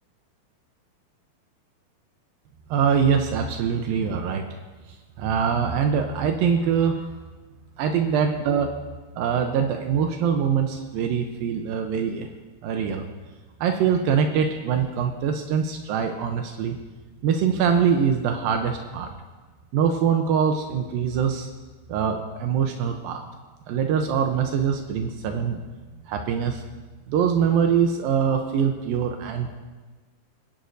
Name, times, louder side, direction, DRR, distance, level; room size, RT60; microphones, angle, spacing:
voice 1, 2.7-4.5 5.2-7.0 7.8-8.7 9.1-12.3 12.6-13.0 13.6-16.8 17.2-19.1 19.7-21.5 21.9-23.2 23.7-25.6 26.1-26.6 27.1-29.6, right 7 dB, 80° right, 4 dB, 2.6 m, -23 dB
24.5 x 10.5 x 2.7 m, 1.3 s
omnidirectional pair, 4.1 m